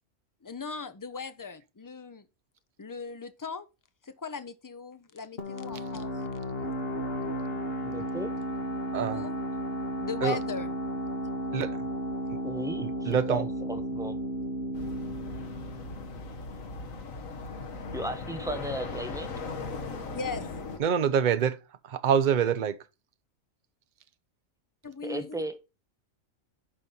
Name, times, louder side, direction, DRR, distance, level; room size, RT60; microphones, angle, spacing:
voice 1, 0.4-2.2 2.8-3.7 4.0-6.1 9.1-9.4 10.0-10.7 20.1-20.6 24.8-25.4, left 5 dB, 25° left, 0.4 m, -38 dB
sound 1, 5.4-16.8, equal, 45° left, 1.8 m, -34 dB
voice 2, 7.8-8.3 12.4-14.2 17.9-19.5 25.0-25.6, right 1 dB, 5° right, 1.0 m, -36 dB
voice 3, 8.9-9.2 10.2-10.4 11.5-11.8 12.8-13.4 20.8-21.6 21.9-22.8, right 8 dB, 45° right, 0.7 m, -25 dB
sound 2, 14.7-20.8, left 3 dB, 75° left, 1.7 m, -38 dB
11.0 x 4.2 x 5.4 m
omnidirectional pair, 1.4 m